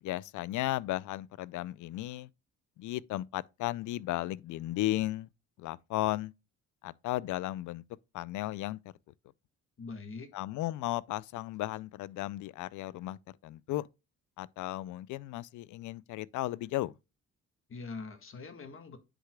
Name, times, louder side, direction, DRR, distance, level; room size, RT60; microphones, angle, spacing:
voice 1, 0.0-2.3 2.8-5.3 5.6-6.3 6.8-7.8 8.1-8.8 10.3-13.2 13.4-13.9 14.4-16.9, left 16 dB, 80° left, 0.5 m, -35 dB
voice 2, 9.8-10.3 17.7-19.0, left 4 dB, 45° left, 1.6 m, -43 dB
9.9 x 4.9 x 2.2 m
cardioid pair, 90°, 30 cm